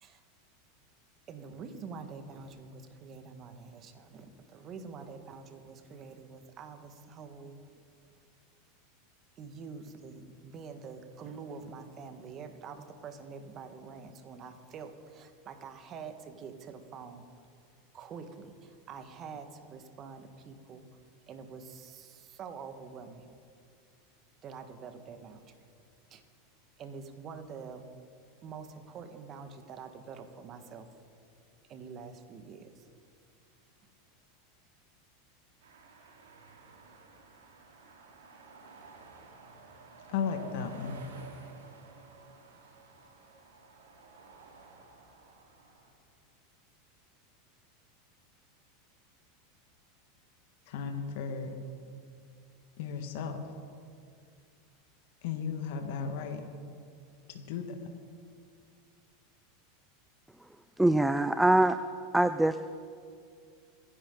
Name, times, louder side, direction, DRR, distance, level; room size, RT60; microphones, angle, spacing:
voice 1, 1.3-7.6 9.4-17.3 17.9-20.9 21.3-23.3 24.4-25.4 26.1-26.2 26.8-27.9 28.4-30.9 31.7-32.8, right 5 dB, 40° right, 7 dB, 1.7 m, -46 dB
sound 1, 35.6-45.9, right 4 dB, 80° right, 2.4 m, -52 dB
voice 2, 40.1-41.1 50.7-51.5 52.8-53.4 55.2-56.4 57.3-57.9, left 6 dB, 65° left, 4 dB, 1.7 m, -35 dB
voice 3, 60.8-61.8 62.1-62.6, right 1 dB, 5° right, 11 dB, 0.5 m, -23 dB
26.5 x 11.0 x 4.0 m, 2.3 s
hypercardioid pair, 95°, 0 cm